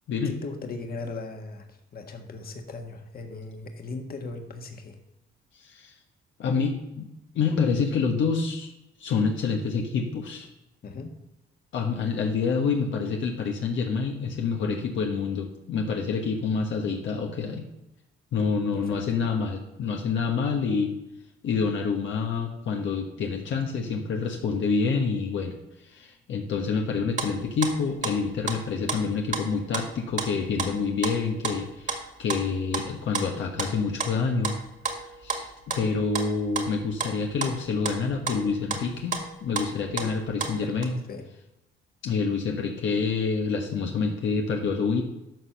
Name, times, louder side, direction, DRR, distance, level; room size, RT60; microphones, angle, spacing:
voice 1, 0.2-5.0 10.8-11.2 18.7-19.0 40.6-40.7 41.1-41.3, left 3 dB, 50° left, 4 dB, 1.6 m, -38 dB
voice 2, 5.5-5.9 6.4-7.1 7.3-8.7 9.0-10.5 11.7-17.6 18.3-20.9 21.4-25.5 25.8-34.6 35.2-41.0 42.0-45.0, left 5 dB, 70° left, 1 dB, 1.3 m, -27 dB
sound 1, 26.9-28.6 28.9-29.0 29.3-29.4 29.7-30.3 30.6-40.8, right 4 dB, 40° right, 2.0 m, -32 dB
12.5 x 4.4 x 6.8 m, 0.94 s
cardioid pair, 90°, 20 cm